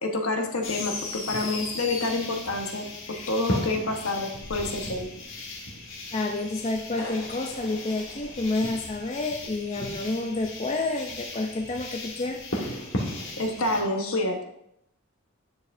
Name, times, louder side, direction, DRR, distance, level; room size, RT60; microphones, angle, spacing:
voice 1, 0.0-5.1 13.4-14.4, left 2 dB, 75° left, 3 dB, 1.2 m, -28 dB
sound 1, 0.6-13.8, left 2 dB, 60° left, 1.5 m, -36 dB
voice 2, 6.1-12.9, left 2 dB, 30° left, 3 dB, 0.5 m, -29 dB
9.6 x 7.0 x 2.6 m, 0.76 s
head